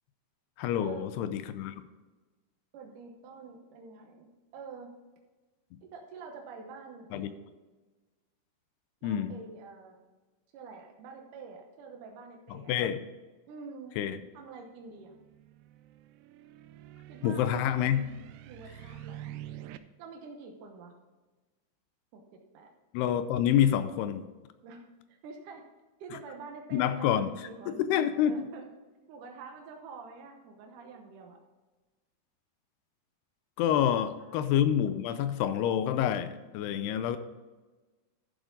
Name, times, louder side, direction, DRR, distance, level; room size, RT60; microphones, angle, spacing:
voice 1, 0.6-1.8 7.1-7.3 9.0-9.3 12.5-13.0 14.0-14.2 17.2-18.0 22.9-24.3 26.7-27.3 27.7-28.4 33.6-37.2, left 10 dB, 85° left, 11 dB, 2.6 m, -27 dB
voice 2, 2.7-4.3 4.5-4.9 5.8-7.5 9.0-10.0 10.5-12.7 13.5-14.0 14.3-15.2 17.1-17.6 18.5-19.3 20.0-21.0 22.1-22.7 24.6-24.8 25.1-25.6 26.0-27.8 28.2-28.7 29.1-31.4 33.7-33.8 34.2-34.3, right 4 dB, 70° right, 2 dB, 2.1 m, -47 dB
sound 1, 14.8-19.8, right 12 dB, 90° right, 2.7 m, -47 dB
12.0 x 7.5 x 3.9 m, 1.2 s
omnidirectional pair, 4.8 m